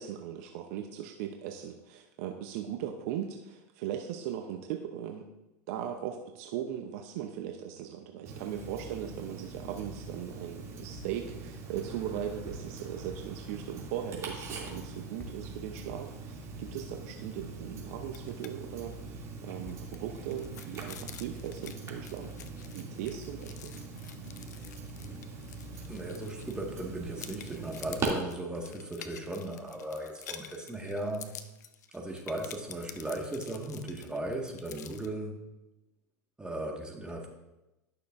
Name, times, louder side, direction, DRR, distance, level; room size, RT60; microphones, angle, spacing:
voice 1, 0.0-5.3 5.7-22.4 22.7-23.7, right 10 dB, 65° right, 5 dB, 0.7 m, -38 dB
Tick-tock, 8.3-28.1, right 4 dB, 35° right, 2.6 m, -42 dB
sound 1, 10.7-14.1 14.4-17.1 17.4-18.5 18.9-21.0, equal, 15° left, 1.3 m, -51 dB
sound 2, 18.1-18.5 18.8-18.9 19.3-26.8 27.2-35.1, left 9 dB, 80° left, 0.6 m, -49 dB
voice 2, 25.9-31.3 31.9-35.4 36.4-37.3, right 1 dB, 10° right, 1 dB, 1.7 m, -37 dB
12.0 x 6.6 x 2.6 m, 0.98 s
hypercardioid pair, 100°, 9 cm